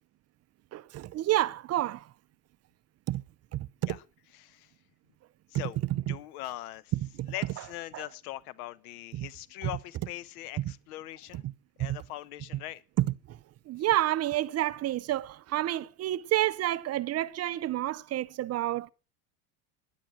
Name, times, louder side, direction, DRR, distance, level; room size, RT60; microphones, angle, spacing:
voice 1, 0.7-2.1 3.1-3.2 3.5-4.0 5.9-6.1 6.9-7.3 7.9-8.0 9.1-9.3 9.6-9.7 10.6-10.7 11.3-11.5 11.8-12.0 13.0-13.4 13.7-18.9, right 14 dB, 35° right, 0.6 m, -29 dB
voice 2, 4.3-4.7 5.5-5.8 6.1-6.9 7.3-11.4 11.8-12.8, left 15 dB, 70° left, 1.1 m, -41 dB
12.5 x 10.5 x 6.0 m
supercardioid pair, 110°, 45 cm